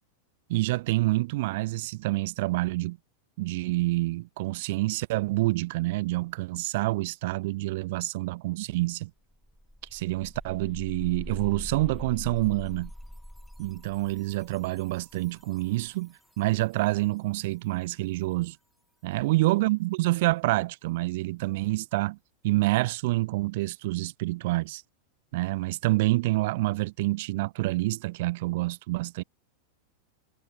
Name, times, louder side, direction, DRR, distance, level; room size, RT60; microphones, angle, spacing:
voice 1, 0.5-3.0 3.4-9.1 9.9-12.9 13.6-18.6 19.0-22.2 22.4-24.8 25.3-29.2, right 20 dB, 50° right, 0.4 m, -27 dB
sound 1, 8.9-9.0 9.3-16.1, equal, ahead, 0.6 m, -43 dB
figure-of-eight pair, 90°, 0 cm